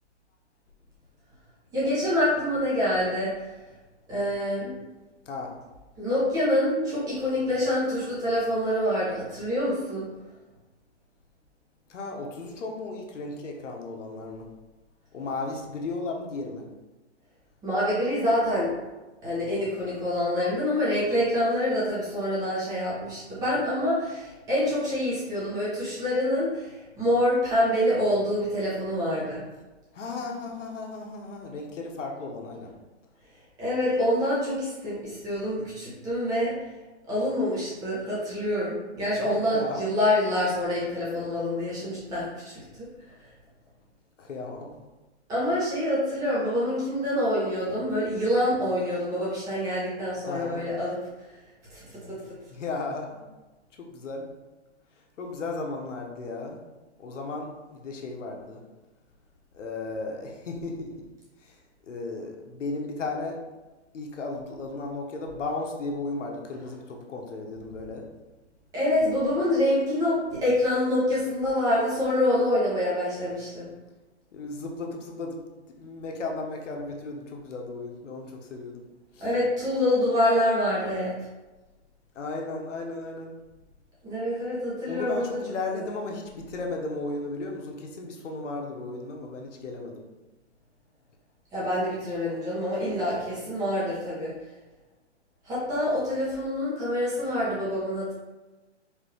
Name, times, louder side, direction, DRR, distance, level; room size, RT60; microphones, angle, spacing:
voice 1, 1.7-3.3 4.1-4.7 6.0-10.0 17.6-18.7 19.2-29.4 33.6-36.5 37.1-42.9 45.3-51.0 51.3-51.4 51.7-52.2 68.7-73.7 79.2-81.1 84.0-85.4 85.7-85.8 91.5-94.3 95.4-98.1, left 1 dB, 10° right, -8 dB, 0.9 m, -26 dB
voice 2, 11.9-14.5 15.1-16.6 29.9-32.7 39.3-39.8 44.2-44.7 50.3-50.6 52.5-53.2 53.8-54.3 55.2-56.6 57.0-58.6 59.5-60.9 61.4-61.6 61.8-63.4 63.9-68.1 74.3-78.8 79.1-79.3 82.1-83.3 84.8-90.0, left 3 dB, 85° left, 1 dB, 1.0 m, -35 dB
4.8 x 2.7 x 3.3 m, 1.1 s
hypercardioid pair, 160°, 36 cm